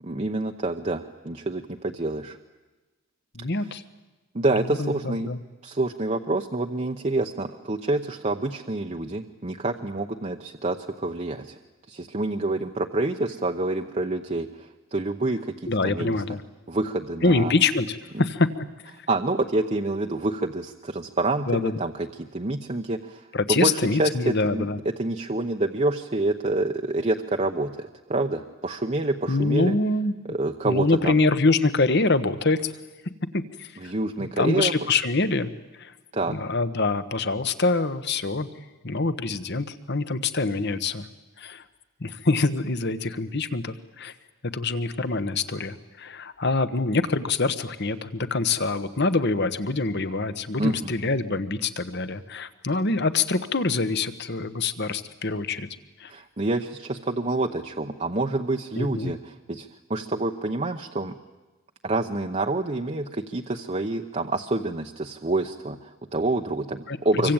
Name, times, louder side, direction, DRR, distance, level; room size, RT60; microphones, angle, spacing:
voice 1, 0.0-2.4 4.3-5.3 5.6-11.6 11.9-16.2 16.7-17.5 18.1-18.2 19.1-21.9 22.2-23.2 23.5-24.7 25.0-29.7 30.3-31.2 33.8-34.7 36.1-36.4 50.6-50.9 56.1-61.1 61.8-67.3, right 2 dB, 30° right, 3 dB, 0.9 m, -27 dB
voice 2, 3.3-3.8 4.6-5.4 15.7-16.4 17.2-18.5 21.5-21.8 23.3-24.8 29.3-30.2 30.6-32.7 33.3-33.9 34.2-35.5 35.8-35.9 36.3-38.5 38.8-41.1 41.4-41.6 42.0-44.1 44.5-55.7 56.0-56.1 58.8-59.1 66.9-67.3, left 3 dB, 50° left, 12 dB, 1.3 m, -25 dB
26.0 x 24.5 x 8.9 m, 1.2 s
head